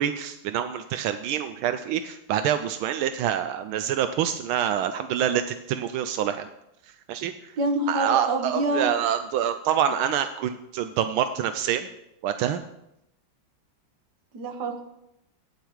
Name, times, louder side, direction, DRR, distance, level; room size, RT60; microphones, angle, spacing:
voice 1, 0.0-6.5 7.1-7.3 7.9-11.9 12.2-12.6, right 9 dB, 85° right, 9 dB, 1.4 m, -26 dB
voice 2, 7.6-8.9 14.3-14.8, right 1 dB, 60° right, 4 dB, 1.9 m, -26 dB
11.5 x 9.3 x 4.7 m, 0.83 s
omnidirectional pair, 2.2 m